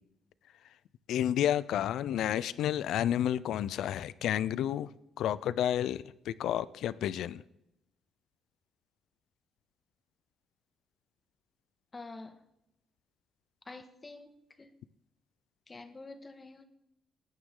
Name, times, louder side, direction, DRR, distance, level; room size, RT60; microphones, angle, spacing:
voice 1, 1.1-4.9 5.2-7.4, left 11 dB, 80° left, 0.5 m, -30 dB
voice 2, 11.9-12.4 13.6-14.7 15.7-16.6, left 3 dB, 25° left, 1.6 m, -47 dB
20.0 x 9.2 x 3.9 m
cardioid pair, 90°, 0 cm